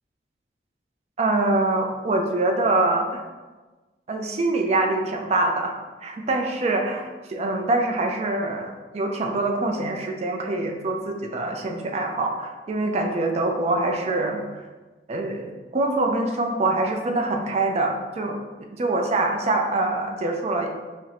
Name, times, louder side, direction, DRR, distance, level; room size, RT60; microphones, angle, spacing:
voice 1, 1.2-3.2 4.1-5.7 6.0-14.4 15.1-18.4 18.8-20.7, right 2 dB, 35° right, 3 dB, 0.3 m, -24 dB
4.2 x 2.0 x 2.6 m, 1.3 s
head